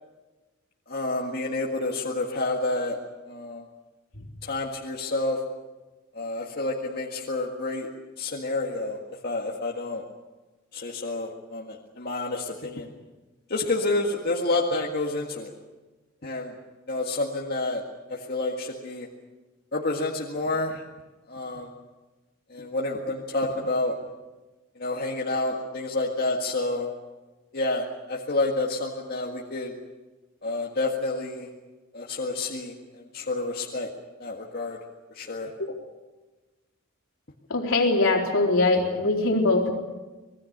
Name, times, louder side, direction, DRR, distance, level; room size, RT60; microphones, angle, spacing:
voice 1, 0.9-3.0 3.2-3.6 4.4-5.4 6.1-7.9 8.2-10.0 10.7-12.9 13.5-15.5 16.2-16.5 16.9-17.8 18.1-19.1 19.7-20.8 21.3-21.7 22.5-23.9 24.7-26.9 27.5-29.7 30.4-31.5 31.9-33.9 34.2-34.8 35.1-35.5, left 2 dB, 50° left, -1 dB, 1.9 m, -29 dB
voice 2, 37.5-39.7, left 2 dB, 80° left, 1 dB, 3.9 m, -22 dB
26.0 x 20.5 x 6.7 m, 1.2 s
head